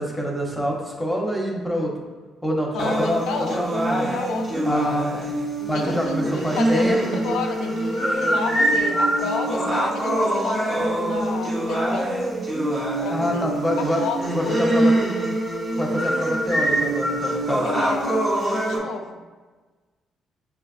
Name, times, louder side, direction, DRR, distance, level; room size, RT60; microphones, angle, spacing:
voice 1, 0.0-1.9 2.4-3.2 3.6-4.1 4.6-5.2 5.7-7.0 7.3-7.4 13.1-14.0 14.3-14.9 15.8-17.7, equal, ahead, -2 dB, 0.8 m, -26 dB
voice 2, 2.7-4.7 5.6-12.2 13.0-13.5 13.8-14.2 14.4-14.6 17.6-19.2, left 5 dB, 85° left, 4 dB, 0.4 m, -31 dB
sound 1, 2.8-18.8, right 1 dB, 45° right, 0.9 m, -24 dB
6.1 x 2.3 x 2.4 m, 1.3 s
cardioid pair, 90°, 0 cm